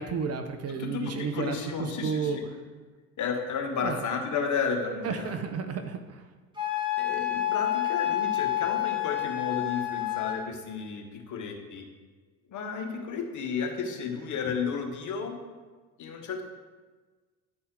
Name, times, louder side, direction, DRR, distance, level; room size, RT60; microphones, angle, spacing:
voice 1, 0.0-2.4 3.8-4.0 5.0-6.2, right 5 dB, 35° right, 8 dB, 0.6 m, -32 dB
voice 2, 0.7-2.4 3.2-5.3 7.0-11.8 12.5-15.4 16.0-16.4, left 5 dB, 40° left, 3 dB, 1.3 m, -32 dB
Wind instrument woodwind instrument, 6.6-10.4, left 13 dB, 10° right, 2.0 m, -29 dB
10.5 x 4.1 x 3.8 m, 1.4 s
hypercardioid pair, 65°, 44 cm